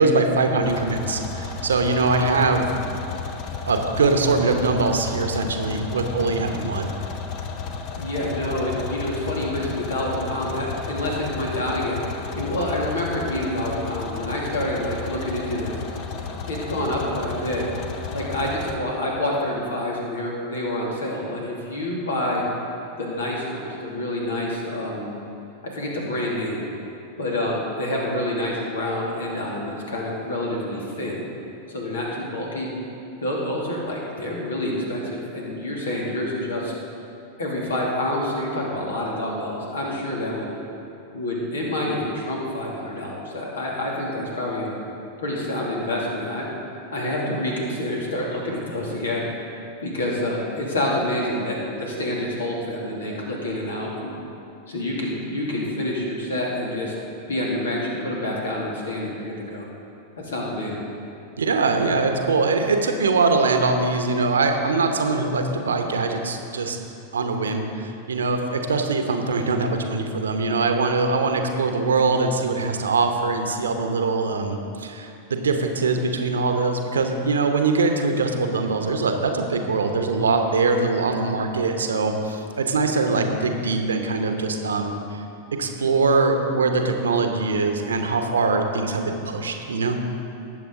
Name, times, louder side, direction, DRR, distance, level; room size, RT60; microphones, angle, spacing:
voice 1, 0.0-2.7 3.7-6.9 61.4-66.8 67.1-85.2 85.5-90.0, right 3 dB, 70° right, 5 dB, 1.0 m, -22 dB
sound 1, 0.6-18.8, left 5 dB, 40° left, 0.9 m, -33 dB
voice 2, 8.0-12.0 12.3-15.7 16.5-17.7 18.1-22.4 23.0-25.1 25.6-26.6 27.2-31.2 31.7-32.7 33.2-36.7 37.4-40.5 41.1-44.7 45.2-46.5 46.9-49.2 49.8-54.1 54.7-56.9 57.3-59.7 60.2-60.8, left 1 dB, 65° left, -3 dB, 2.6 m, -27 dB
18.5 x 7.8 x 3.9 m, 2.7 s
figure-of-eight pair, 90°, 0 cm